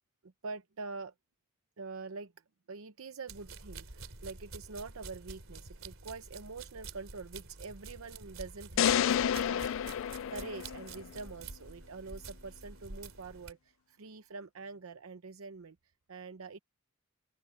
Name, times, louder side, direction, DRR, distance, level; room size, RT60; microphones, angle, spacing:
voice 1, 0.2-1.1 1.8-2.3 2.7-15.8 16.1-16.6, right 4 dB, 90° right, 0.7 m, -45 dB
sound 1, 3.3-13.5, right 3 dB, 70° right, 3.3 m, -48 dB
sound 2, 8.8-11.1, left 9 dB, 65° left, 0.3 m, -30 dB
open air
head